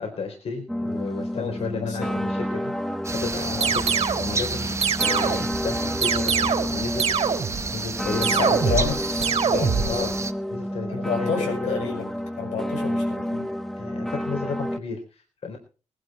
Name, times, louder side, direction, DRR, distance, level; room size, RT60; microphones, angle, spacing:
voice 1, 0.0-3.9 4.1-9.0 9.9-10.1 10.5-11.7 13.8-15.6, left 4 dB, 60° left, 2 dB, 4.2 m, -33 dB
sound 1, 0.7-14.8, equal, ahead, 0.9 m, -30 dB
voice 2, 1.3-2.3 8.3-9.2 9.5-10.1 11.0-12.1 12.4-13.5, left 5 dB, 85° left, 3 dB, 6.3 m, -30 dB
sound 2, 3.0-10.3, right 4 dB, 25° right, 0.8 m, -31 dB
sound 3, 3.6-4.3 4.8-5.5 6.0-6.7 7.0-7.6 8.2-8.9 9.2-9.9, right 6 dB, 55° right, 3.1 m, -23 dB
20.0 x 11.5 x 4.5 m, 0.36 s
wide cardioid pair, 140°, 12 cm